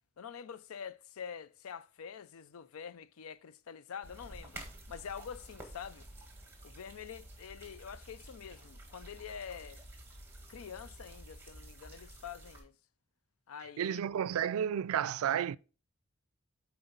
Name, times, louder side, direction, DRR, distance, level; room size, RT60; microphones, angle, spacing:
voice 1, 0.2-6.0 6.6-9.8 10.5-12.7 13.5-14.0, left 7 dB, 85° left, 0.4 m, -46 dB
sound 1, 4.0-12.6, right 1 dB, 10° right, 1.5 m, -51 dB
voice 2, 13.8-15.6, right 9 dB, 85° right, 0.3 m, -31 dB
8.0 x 4.4 x 3.8 m
head